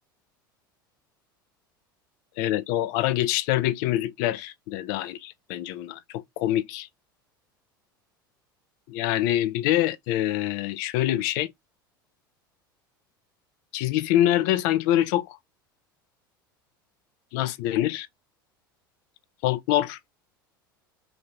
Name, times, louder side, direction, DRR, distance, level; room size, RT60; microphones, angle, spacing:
voice 1, 2.4-6.9 8.9-11.5 13.7-15.4 17.3-18.1 19.4-20.0, left 13 dB, 55° left, 0.5 m, -25 dB
2.9 x 2.8 x 3.2 m
hypercardioid pair, 80°, 12 cm